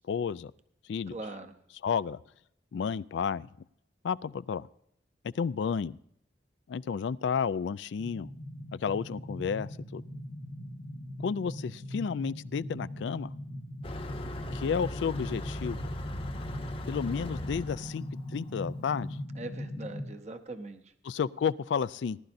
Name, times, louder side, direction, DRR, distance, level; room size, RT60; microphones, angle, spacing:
voice 1, 0.1-0.5 0.9-1.2 1.8-2.2 2.7-3.5 4.0-4.7 5.3-6.0 6.7-8.3 8.8-10.0 11.2-13.3 14.5-15.9 16.9-18.0 18.3-19.1 21.0-22.2, left 6 dB, 75° left, 17 dB, 0.3 m, -31 dB
voice 2, 1.1-1.5 19.3-20.9, right 2 dB, 35° right, 7 dB, 0.8 m, -41 dB
sound 1, 8.0-20.1, left 1 dB, 90° left, 1.5 m, -40 dB
Motor vehicle (road), 13.8-19.0, left 1 dB, 30° left, 0.8 m, -39 dB
19.0 x 11.5 x 2.6 m, 0.73 s
head